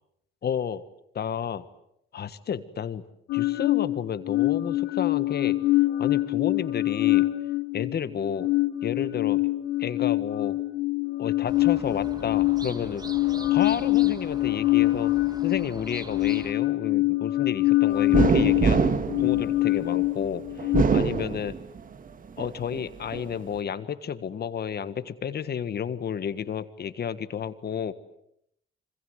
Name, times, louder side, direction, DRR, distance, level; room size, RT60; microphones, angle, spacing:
voice 1, 0.4-0.8 1.1-1.6 2.1-3.0 3.3-5.6 6.0-7.3 7.7-8.5 8.8-9.4 9.8-10.6 11.2-13.0 13.5-15.1 15.4-21.5 22.4-27.9, left 8 dB, 55° left, 12 dB, 1.6 m, -31 dB
sound 1, 3.3-20.8, left 18 dB, 85° left, 1.0 m, -25 dB
sound 2, 11.5-16.5, right 2 dB, 20° right, 2.0 m, -42 dB
sound 3, 18.1-20.0 20.6-21.9 22.4-23.3, right 5 dB, 45° right, 1.6 m, -24 dB
26.5 x 26.0 x 8.0 m, 0.76 s
cardioid pair, 90°, 20 cm